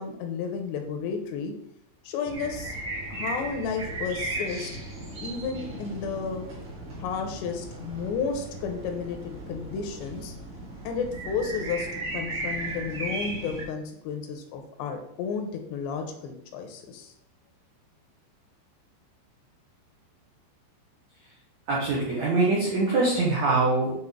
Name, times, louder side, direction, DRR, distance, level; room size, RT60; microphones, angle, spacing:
voice 1, 0.0-1.5 2.0-2.7 3.1-4.7 5.2-6.5 7.0-10.3 10.8-17.1, left 5 dB, 85° left, 4 dB, 2.8 m, -32 dB
sound 1, 2.2-13.6, right 2 dB, 45° right, 1.8 m, -36 dB
voice 2, 21.7-23.9, right 3 dB, 80° right, -5 dB, 1.6 m, -23 dB
7.7 x 3.8 x 3.7 m, 0.74 s
omnidirectional pair, 5.1 m